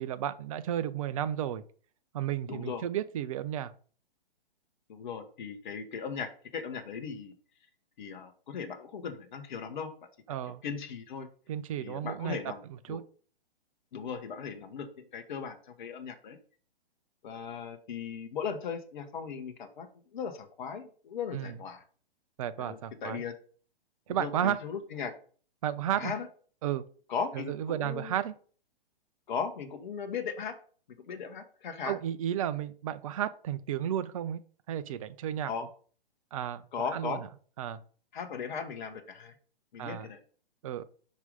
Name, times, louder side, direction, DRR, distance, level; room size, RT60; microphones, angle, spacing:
voice 1, 0.0-1.6 2.1-3.7 10.3-10.6 11.5-12.4 12.7-13.0 21.3-21.6 22.4-23.2 24.1-24.6 25.6-26.1 26.6-26.8 27.3-28.3 31.8-34.4 34.7-35.5 36.3-36.6 36.9-37.3 37.6-37.8 39.8-40.1 40.6-40.8, right 10 dB, 35° right, 14 dB, 0.5 m, -33 dB
voice 2, 2.5-2.8 4.9-7.3 8.0-9.9 10.6-11.3 11.8-12.6 12.9-13.0 13.9-16.4 17.2-21.8 22.6-23.3 24.2-25.1 25.9-26.3 27.1-28.2 29.3-30.6 31.0-32.0 35.4-35.7 36.7-37.2 38.1-39.4 39.7-40.2, left 6 dB, 50° left, 6 dB, 1.1 m, -37 dB
5.1 x 4.7 x 5.2 m, 0.44 s
figure-of-eight pair, 120°, 30 cm